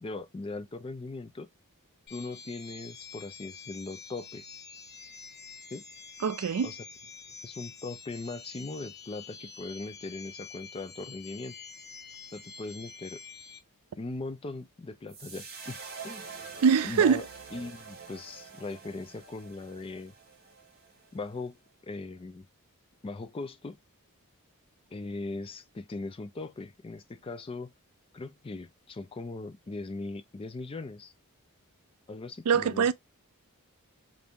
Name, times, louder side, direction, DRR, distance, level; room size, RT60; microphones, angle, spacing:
voice 1, 0.0-1.5 2.1-4.4 5.7-5.8 6.6-6.9 7.4-11.6 12.3-13.2 14.0-15.8 16.0-16.3 16.8-17.2 17.5-20.1 21.1-22.5 23.0-23.8 24.9-27.7 28.1-31.1 32.1-32.9, left 3 dB, 25° left, 0.4 m, -39 dB
sound 1, 2.1-13.6, left 5 dB, 45° left, 0.7 m, -47 dB
voice 2, 6.2-6.7 16.6-17.2 32.5-32.9, right 6 dB, 80° right, 0.4 m, -23 dB
sound 2, 15.1-21.4, right 5 dB, 45° right, 1.3 m, -46 dB
4.0 x 2.6 x 3.5 m
head